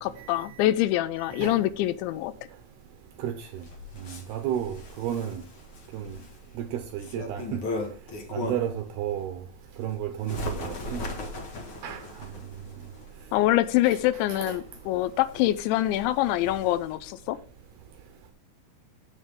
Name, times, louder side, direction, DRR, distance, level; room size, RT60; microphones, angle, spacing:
voice 1, 0.0-2.3 13.3-17.4, left 14 dB, 80° left, 2.8 m, -25 dB
Bird, 3.4-8.8 9.3-17.0, left 2 dB, 65° left, 1.2 m, -39 dB
voice 2, 4.3-4.7 5.0-5.3 7.1-7.4 8.5-8.7 9.0-9.3 9.8-9.9 10.3-10.4 10.9-11.0 11.8-11.9, right 11 dB, 75° right, 2.4 m, -28 dB
15.5 x 6.6 x 3.6 m
omnidirectional pair, 5.5 m